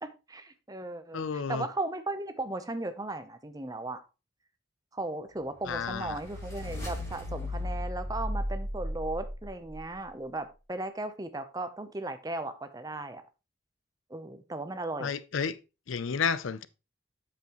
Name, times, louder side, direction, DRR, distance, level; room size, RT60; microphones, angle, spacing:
voice 1, 0.0-4.0 4.9-13.2 14.1-15.1, right 2 dB, 20° right, 0.7 m, -36 dB
voice 2, 1.1-1.7 5.7-6.2 15.0-15.6 15.9-16.7, left 6 dB, 80° left, 0.5 m, -31 dB
sound 1, 5.6-9.8, left 1 dB, 20° left, 5.0 m, -36 dB
8.2 x 6.9 x 3.0 m
head